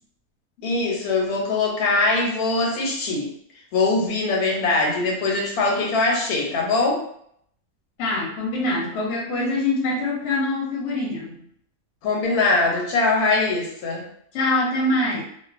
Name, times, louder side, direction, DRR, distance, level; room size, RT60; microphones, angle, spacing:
voice 1, 0.6-3.3 3.7-7.0 12.0-14.0, left 3 dB, 85° left, -1 dB, 1.1 m, -22 dB
voice 2, 8.0-11.4 14.3-15.2, left 2 dB, 60° left, -2 dB, 0.9 m, -24 dB
2.4 x 2.3 x 2.4 m, 0.67 s
omnidirectional pair, 1.6 m